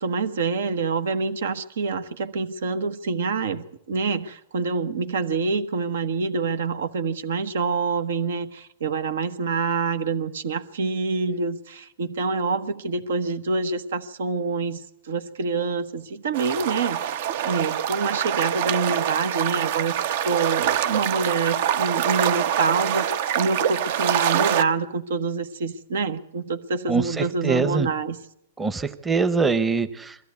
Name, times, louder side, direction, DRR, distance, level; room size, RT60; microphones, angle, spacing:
voice 1, 0.0-20.0 20.2-28.2, right 4 dB, 80° right, 11 dB, 1.3 m, -26 dB
Lapping Waves, 16.3-24.6, right 10 dB, 60° right, 0.8 m, -25 dB
voice 2, 26.9-27.9 28.6-30.2, right 4 dB, 10° right, 11 dB, 0.8 m, -23 dB
22.0 x 14.0 x 8.3 m, 0.75 s
hypercardioid pair, 135°, 0 cm